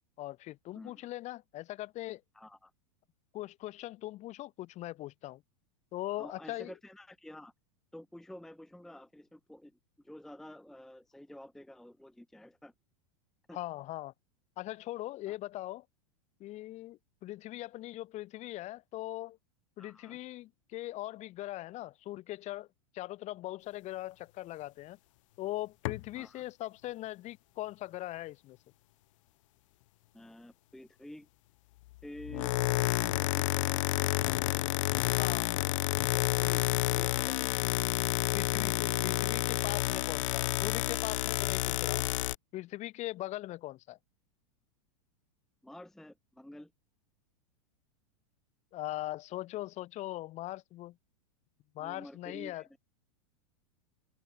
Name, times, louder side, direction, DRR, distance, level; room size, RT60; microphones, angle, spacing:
voice 1, 0.2-2.2 3.3-5.4 5.9-6.7 13.5-14.1 14.6-15.9 16.4-19.4 19.8-22.7 22.9-25.0 25.4-28.6 35.2-35.5 38.3-42.1 42.5-44.0 48.7-51.0 51.7-52.6, left 16 dB, 40° left, 1.9 m, -40 dB
voice 2, 2.3-2.7 6.2-7.5 7.9-9.7 10.0-12.7 13.5-13.6 15.3-15.4 19.8-20.2 26.2-26.4 30.1-31.3 32.0-32.5 45.6-46.7 51.8-52.8, left 1 dB, ahead, 0.6 m, -49 dB
sound 1, 25.8-26.1 32.2-42.3, left 19 dB, 65° left, 0.4 m, -30 dB
hypercardioid pair, 105°, 18 cm